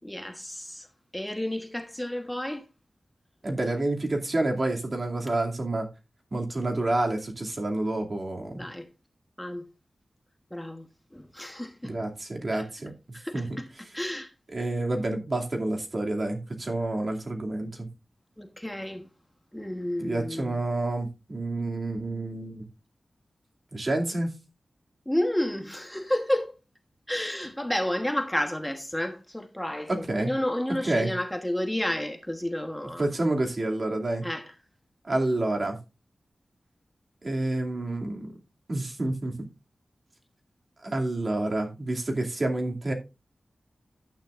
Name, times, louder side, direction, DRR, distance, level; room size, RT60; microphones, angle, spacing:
voice 1, 0.0-0.9 1.1-2.6 8.5-8.9 9.4-9.7 10.5-10.9 11.1-11.9 12.5-12.6 13.1-13.7 13.9-14.3 18.4-19.1 19.5-20.6 25.1-26.6 27.1-33.0 34.2-34.5, left 1 dB, 5° left, 1.3 m, -31 dB
voice 2, 3.4-5.9 6.3-8.6 11.8-13.5 13.8-13.9 14.5-17.9 20.0-22.7 23.7-24.3 29.9-30.3 30.8-31.1 33.0-34.2 35.0-35.8 37.2-38.4 38.7-39.5 40.8-42.9, right 2 dB, 45° right, 2.5 m, -29 dB
12.0 x 9.1 x 2.5 m
wide cardioid pair, 95°, 0 cm